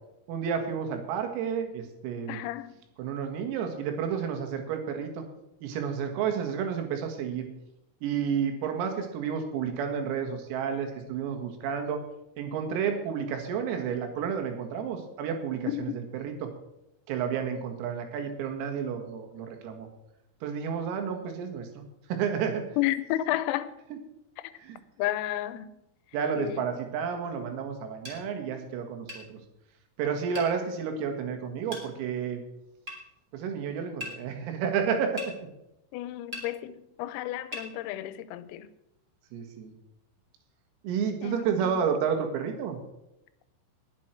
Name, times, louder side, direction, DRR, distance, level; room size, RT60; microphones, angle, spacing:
voice 1, 0.3-2.4 3.0-5.2 5.6-7.5 8.0-12.0 12.4-16.5 17.1-19.9 20.4-21.7 22.1-22.7 24.6-24.8 26.1-29.4 30.0-32.4 33.3-35.2 39.3-39.7 40.8-42.8, right 7 dB, 90° right, 4.5 m, -31 dB
voice 2, 2.3-2.7 15.7-16.0 22.8-23.7 25.0-25.7 26.4-26.7 35.9-38.7 41.2-41.8, left 14 dB, 90° left, 3.5 m, -32 dB
sound 1, 28.0-28.2 29.1-29.3 30.3-30.5 31.7-31.9 32.9-33.0 34.0-34.2 35.2-35.3 36.3-36.5 37.5-37.7, left 2 dB, 20° right, 2.4 m, -38 dB
20.0 x 8.4 x 4.5 m
omnidirectional pair, 6.0 m